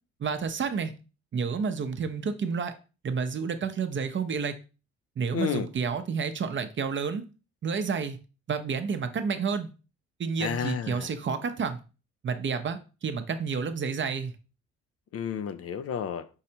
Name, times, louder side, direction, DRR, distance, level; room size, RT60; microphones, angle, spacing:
voice 1, 0.2-0.9 1.3-2.7 3.0-4.6 5.2-7.2 7.6-8.2 8.5-9.7 10.2-11.8 12.2-14.3, right 5 dB, 40° right, 0.7 m, -30 dB
voice 2, 5.3-5.7 10.4-11.1 15.1-16.3, left 8 dB, 50° left, 0.5 m, -31 dB
5.5 x 3.2 x 2.8 m
cardioid pair, 90°, 30 cm